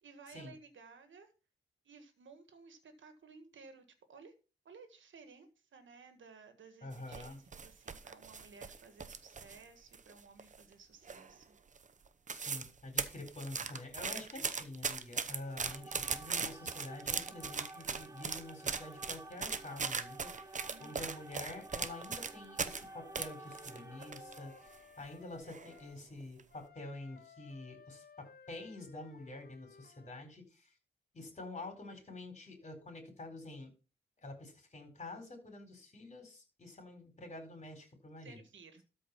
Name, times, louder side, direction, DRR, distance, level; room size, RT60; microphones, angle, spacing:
voice 1, 0.0-1.3 1.8-4.3 4.6-11.6 20.6-21.0 38.2-38.8, right 4 dB, 80° right, 1.6 m, -57 dB
voice 2, 6.8-7.4 12.3-30.7 31.1-33.7 34.2-38.4, left 2 dB, 35° left, 4.4 m, -48 dB
sound 1, 6.9-9.6 9.9-10.7 11.1-11.4 11.8-11.9 12.1-12.7 13.0-22.8 23.2-24.4 24.7-24.8 25.5-25.8 26.2-26.4, right 5 dB, 40° right, 0.8 m, -39 dB
sound 2, 15.4-24.9, right 2 dB, 15° right, 0.4 m, -52 dB
Wind instrument woodwind instrument, 22.6-26.0 26.5-30.3, left 6 dB, 55° left, 1.0 m, -59 dB
13.0 x 4.5 x 5.7 m
wide cardioid pair, 125°, 19 cm